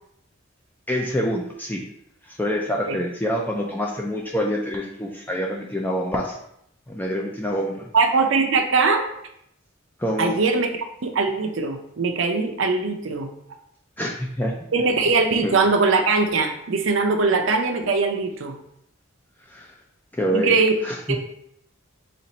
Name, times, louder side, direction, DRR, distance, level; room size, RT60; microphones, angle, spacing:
voice 1, 0.9-1.8 2.3-6.4 6.9-7.9 10.0-10.3 14.0-14.6 15.4-15.6 19.5-19.7 20.1-20.6 20.8-21.2, equal, 10° left, -1 dB, 0.3 m, -26 dB
voice 2, 7.9-9.1 10.2-13.3 14.7-18.6 20.3-20.7 21.1-21.2, right 4 dB, 65° right, 4 dB, 0.5 m, -21 dB
4.2 x 2.5 x 3.9 m, 0.75 s
head